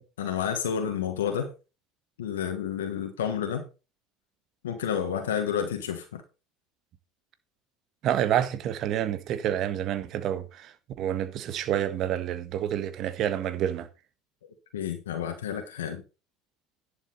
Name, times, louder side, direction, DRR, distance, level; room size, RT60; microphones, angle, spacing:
voice 1, 0.2-1.5 2.2-3.7 4.6-6.2 14.7-16.0, left 8 dB, 80° left, 1.5 m, -30 dB
voice 2, 8.0-10.7 11.0-13.9, right 10 dB, 55° right, 1.4 m, -28 dB
11.0 x 7.4 x 4.2 m
hypercardioid pair, 75°, 0 cm